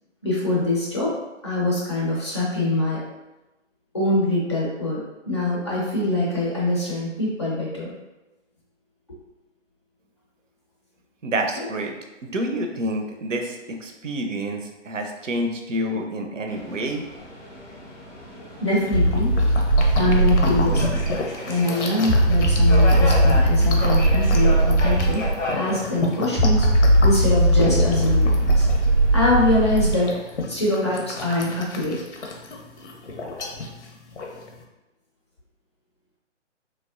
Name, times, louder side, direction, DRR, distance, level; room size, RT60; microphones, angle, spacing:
voice 1, 0.2-1.1 1.4-3.0 3.9-7.9 11.5-11.7 18.6-19.4 19.9-21.0 21.4-25.2 25.5-28.7 29.1-30.1 30.5-32.0, left 2 dB, 25° left, -6 dB, 0.4 m, -24 dB
voice 2, 11.2-11.9 12.2-17.0, right 1 dB, 80° right, 4 dB, 0.6 m, -28 dB
Subway metro underground, 16.5-30.1, left 1 dB, 90° left, 1.0 m, -34 dB
sound 1, 18.8-34.6, left 3 dB, 70° left, 0.6 m, -32 dB
sound 2, 18.9-21.2 22.1-25.3 26.4-29.9, right 1 dB, 20° right, 0.6 m, -18 dB
3.3 x 2.0 x 2.4 m, 1.0 s
figure-of-eight pair, 130°, 37 cm